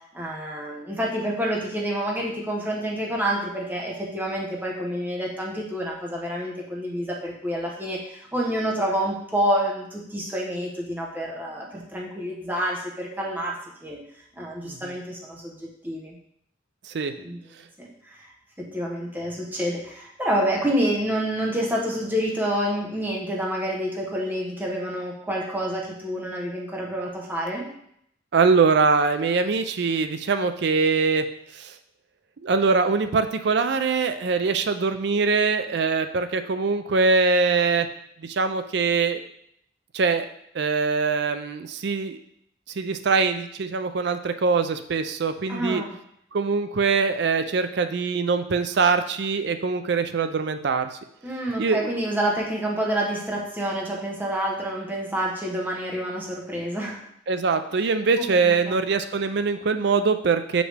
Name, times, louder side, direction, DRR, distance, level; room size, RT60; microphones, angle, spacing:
voice 1, 0.1-14.0 14.3-16.2 17.2-17.5 17.8-18.3 18.6-27.7 45.5-45.9 51.2-57.0 58.2-58.8, equal, 10° right, -2 dB, 0.9 m, -28 dB
voice 2, 28.3-31.3 31.5-31.7 32.4-37.9 38.2-39.2 39.9-40.3 40.5-42.2 42.8-45.8 46.3-50.9 51.6-51.9 57.3-60.6, right 4 dB, 60° right, 9 dB, 0.4 m, -23 dB
5.9 x 5.1 x 3.3 m, 0.72 s
head